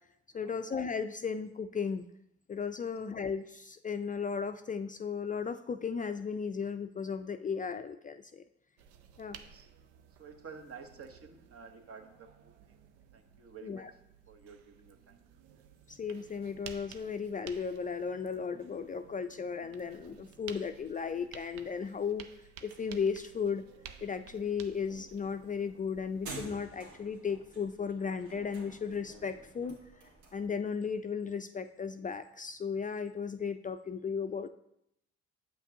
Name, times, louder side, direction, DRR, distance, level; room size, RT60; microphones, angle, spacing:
voice 1, 0.3-2.0 2.5-8.4 9.2-9.4 13.6-13.9 15.9-22.3 22.6-23.6 24.0-29.8 30.3-34.5, left 6 dB, 25° left, 9 dB, 0.4 m, -35 dB
sound 1, 8.8-26.7, right 8 dB, 85° right, 0.5 m, -54 dB
voice 2, 9.3-9.7 10.2-12.8 13.1-13.8 14.3-15.2, right 5 dB, 50° right, 4 dB, 1.1 m, -51 dB
sound 2, 24.5-30.5, right 3 dB, 70° right, 1.8 m, -50 dB
7.9 x 5.8 x 2.7 m, 0.76 s
hypercardioid pair, 50°, 30 cm